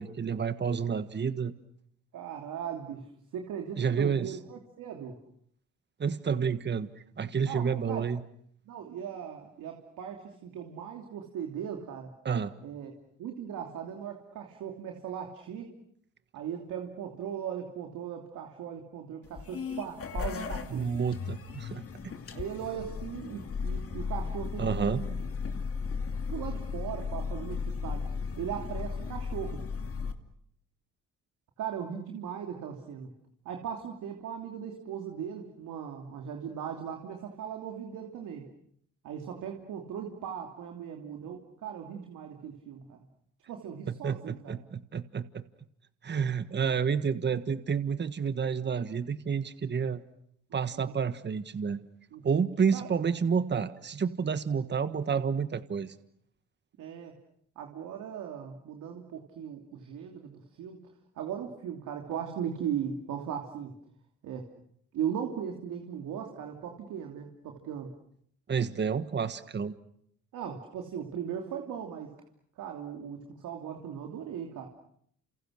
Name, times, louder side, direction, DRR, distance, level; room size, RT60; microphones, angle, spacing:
voice 1, 0.0-1.5 3.8-4.3 6.0-6.9 7.2-8.2 12.2-12.5 20.7-22.1 24.6-25.0 43.9-45.4 46.0-50.0 50.5-51.8 52.2-55.9 68.5-69.7, right 6 dB, 35° right, 12 dB, 1.5 m, -30 dB
voice 2, 2.1-3.1 3.3-5.2 7.5-8.1 8.6-12.1 12.6-12.9 13.2-15.8 16.3-21.0 22.3-25.2 25.5-25.6 26.3-28.1 28.4-29.6 31.6-33.1 33.4-38.5 39.0-43.0 43.5-44.7 50.5-50.9 52.1-52.4 52.7-52.9 56.8-57.1 57.6-60.8 61.1-63.7 64.2-64.5 64.9-67.9 70.3-72.1 72.6-74.7, right 8 dB, 85° right, 3 dB, 3.0 m, -38 dB
sound 1, 19.2-30.1, left 5 dB, 50° left, 2.6 m, -35 dB
29.5 x 28.0 x 6.5 m, 0.69 s
cardioid pair, 90°, 30 cm